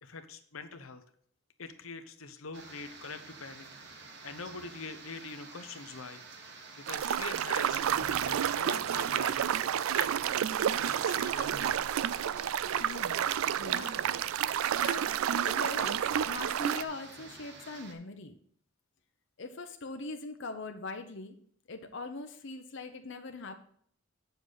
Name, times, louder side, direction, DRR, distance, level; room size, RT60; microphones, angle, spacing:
voice 1, 0.0-1.0 1.6-6.2 6.8-9.4 9.9-11.8, left 4 dB, 90° left, 8 dB, 1.0 m, -44 dB
sound 1, 2.5-17.9, right 3 dB, 55° right, 1.3 m, -48 dB
sound 2, 6.9-16.8, right 9 dB, 90° right, 0.4 m, -30 dB
voice 2, 12.8-14.1 14.8-15.2 15.4-18.4 19.4-21.3 21.7-23.6, left 3 dB, 60° left, 6 dB, 0.8 m, -42 dB
8.0 x 7.1 x 4.0 m, 0.62 s
head